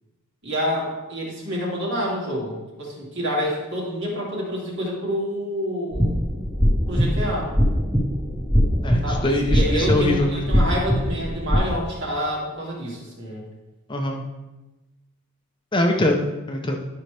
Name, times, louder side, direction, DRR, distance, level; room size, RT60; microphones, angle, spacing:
voice 1, 0.4-6.1 6.9-7.5 9.0-13.4, equal, 55° right, -4 dB, 2.4 m, -28 dB
sound 1, 5.9-11.6, equal, 5° right, 2.4 m, -22 dB
voice 2, 8.8-10.5 13.9-14.2 15.7-16.8, left 1 dB, 20° left, 2 dB, 0.6 m, -23 dB
11.5 x 5.6 x 3.3 m, 1.1 s
head